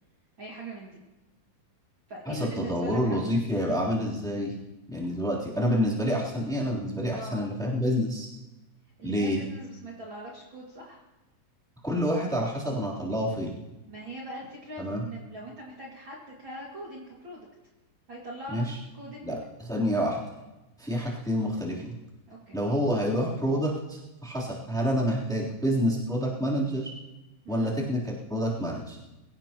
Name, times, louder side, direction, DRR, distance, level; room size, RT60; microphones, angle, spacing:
voice 1, 0.4-1.0 2.1-3.2 7.1-7.5 9.0-11.0 13.9-17.5 18.1-18.6 18.9-19.4 22.3-22.6 27.4-27.7, right 1 dB, 40° right, -4 dB, 2.5 m, -41 dB
voice 2, 2.3-4.5 4.9-8.3 9.0-9.4 11.8-13.6 14.8-15.0 18.5-18.8 19.2-20.2 20.8-21.9 22.5-26.9 27.5-29.0, equal, ahead, -5 dB, 2.8 m, -28 dB
23.5 x 16.5 x 3.0 m, 1.0 s
omnidirectional pair, 4.0 m